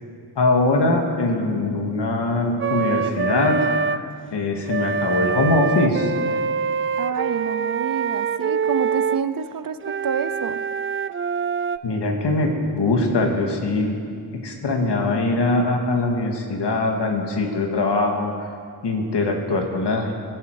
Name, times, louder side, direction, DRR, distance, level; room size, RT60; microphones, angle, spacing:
voice 1, 0.4-3.6 3.9-4.0 4.3-6.1 11.8-14.0 14.4-18.3 18.8-20.1, left 2 dB, 90° left, 2 dB, 2.1 m, -22 dB
Wind instrument woodwind instrument, 2.6-4.0 4.7-9.2 9.8-11.8, right 5 dB, 35° right, 0.4 m, -24 dB
voice 2, 7.0-10.6, right 7 dB, 55° right, 12 dB, 0.7 m, -28 dB
22.5 x 11.5 x 4.9 m, 2.3 s
wide cardioid pair, 120°, 40 cm